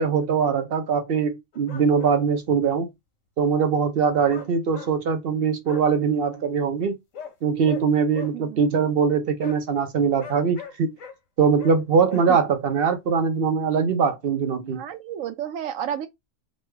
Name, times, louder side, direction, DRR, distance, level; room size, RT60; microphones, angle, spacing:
voice 1, 0.0-2.9 3.4-7.0 7.4-10.9 11.4-14.8, right 6 dB, 60° right, 0.7 m, -22 dB
sound 1, 1.5-2.2 4.3-4.9 5.6-5.9 7.1-7.3 7.6-7.9 8.1-8.3 9.4-9.6 10.2-11.2 11.6-11.8 12.1-12.3, left 7 dB, 85° left, 1.2 m, -39 dB
voice 2, 14.7-16.1, right 10 dB, 90° right, 1.0 m, -31 dB
3.1 x 2.3 x 3.2 m
omnidirectional pair, 1.3 m